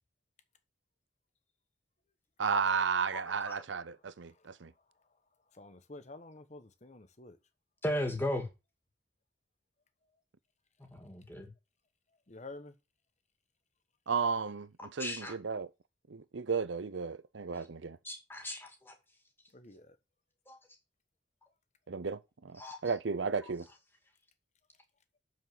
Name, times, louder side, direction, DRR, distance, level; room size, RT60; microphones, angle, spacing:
voice 1, 2.4-4.7 14.1-15.7 16.1-18.0 21.9-23.7, right 5 dB, 80° right, 0.6 m, -34 dB
voice 2, 5.6-7.4 12.3-12.7 19.5-19.9, left 2 dB, 40° left, 1.1 m, -49 dB
voice 3, 7.8-8.5 11.0-11.5 15.0-15.3 18.0-18.9 20.5-20.6 22.6-22.8, left 1 dB, 10° left, 2.1 m, -36 dB
7.0 x 6.4 x 7.7 m
head